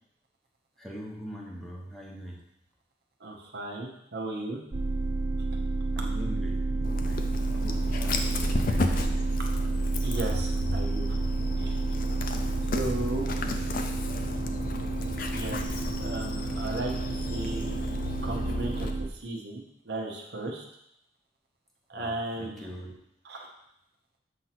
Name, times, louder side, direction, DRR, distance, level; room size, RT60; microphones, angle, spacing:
voice 1, 0.8-2.4 5.9-9.2 12.8-13.7 21.9-22.9, equal, ahead, -3 dB, 0.9 m, -42 dB
voice 2, 3.2-4.6 10.0-11.8 12.7-13.3 15.3-15.7 16.0-16.9 17.3-17.8 18.2-20.6 21.9-22.7 23.2-23.5, right 2 dB, 55° right, 0 dB, 1.0 m, -35 dB
sound 1, 4.7-19.1, right 3 dB, 25° right, 0.3 m, -30 dB
Dog, 6.8-18.9, left 2 dB, 45° left, 0.5 m, -35 dB
sound 2, 10.1-19.0, left 2 dB, 80° left, 0.9 m, -43 dB
7.4 x 2.9 x 5.9 m, 0.77 s
head